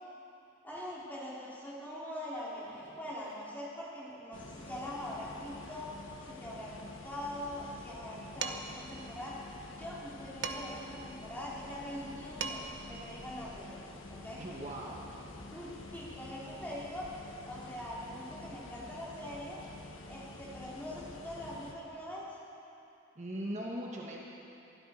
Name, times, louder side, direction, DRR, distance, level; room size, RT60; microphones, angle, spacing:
voice 1, 0.6-5.9 6.2-9.4 9.8-12.6 12.9-13.8 14.1-14.4 15.5-19.6 20.1-22.3, left 1 dB, 10° left, -7 dB, 3.1 m, -43 dB
Gurgling / Toilet flush, 2.4-6.2, equal, 10° right, 2.2 m, -62 dB
sound 1, 4.3-21.8, left 2 dB, 90° left, 1.3 m, -48 dB
Dishes pots and pans, 8.4-8.8 10.4-10.9 12.1-12.2 12.4-12.9, right 5 dB, 65° right, 0.9 m, -38 dB
voice 2, 14.4-15.0 23.1-24.2, right 1 dB, 35° right, -3 dB, 1.2 m, -39 dB
23.5 x 12.0 x 4.3 m, 2.8 s
head